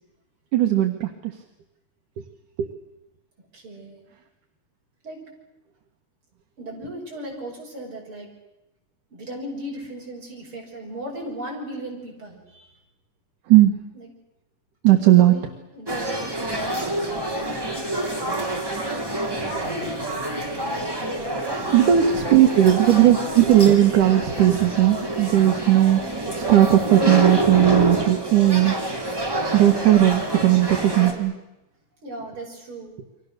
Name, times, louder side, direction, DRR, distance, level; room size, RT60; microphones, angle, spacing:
voice 1, 0.5-1.4 2.6-2.7 13.5-13.8 14.8-15.3 18.7-18.8 21.3-21.4 21.7-28.8 29.5-31.3, right 13 dB, 75° right, 4 dB, 2.8 m, -17 dB
voice 2, 3.5-4.0 5.0-5.2 6.6-8.3 9.1-12.7 13.9-14.1 15.3-15.5 15.7-16.2 16.6-17.0 19.2-19.9 21.3-21.8 22.0-22.5 32.0-33.0, right 1 dB, 40° right, -1 dB, 7.2 m, -37 dB
sound 1, 15.9-31.1, right 1 dB, 5° right, 2.6 m, -27 dB
29.5 x 24.5 x 6.6 m, 0.96 s
omnidirectional pair, 3.7 m